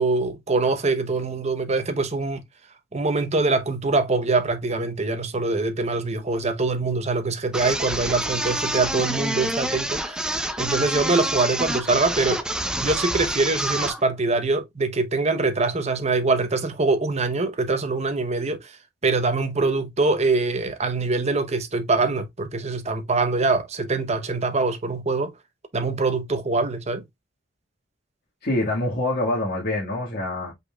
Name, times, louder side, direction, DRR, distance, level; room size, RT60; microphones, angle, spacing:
voice 1, 0.0-2.4 2.9-12.5 12.8-18.8 19.0-25.3 25.7-27.0, right 3 dB, 35° right, 0.8 m, -24 dB
sound 1, 7.5-14.0, right 1 dB, 5° right, 0.6 m, -27 dB
voice 2, 28.4-30.5, left 1 dB, 60° left, 1.7 m, -25 dB
5.3 x 4.1 x 2.3 m
head